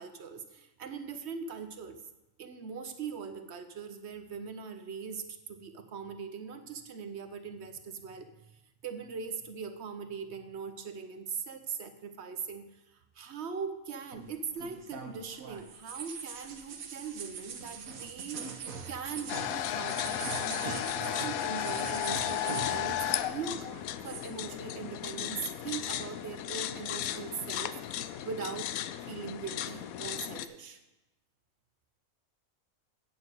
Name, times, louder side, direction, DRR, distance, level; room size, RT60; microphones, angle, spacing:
voice 1, 0.0-2.0 2.4-23.7 24.0-27.8 28.2-28.8 29.0-30.8, right 6 dB, 55° right, 8 dB, 1.1 m, -41 dB
sound 1, 14.1-23.2 23.5-24.3, right 6 dB, 80° right, 1.4 m, -42 dB
sound 2, 19.3-30.5, left 11 dB, 85° left, 1.0 m, -35 dB
8.0 x 7.1 x 8.1 m, 1.0 s
omnidirectional pair, 1.4 m